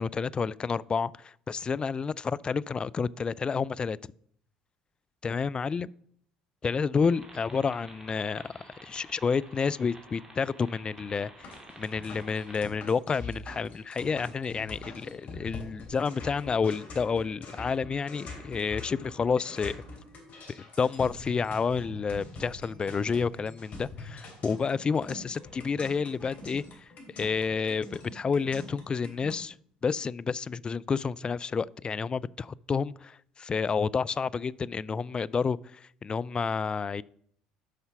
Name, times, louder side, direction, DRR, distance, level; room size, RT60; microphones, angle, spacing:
voice 1, 0.0-4.0 5.2-5.9 6.6-11.5 11.8-19.7 20.5-26.8 27.1-29.6 29.8-37.0, left 5 dB, 30° left, 0.3 m, -30 dB
sound 1, 7.0-12.6, right 1 dB, 20° right, 2.4 m, -51 dB
sound 2, 11.4-29.4, left 2 dB, 50° left, 3.0 m, -44 dB
8.3 x 5.6 x 5.7 m
hypercardioid pair, 65°, 3 cm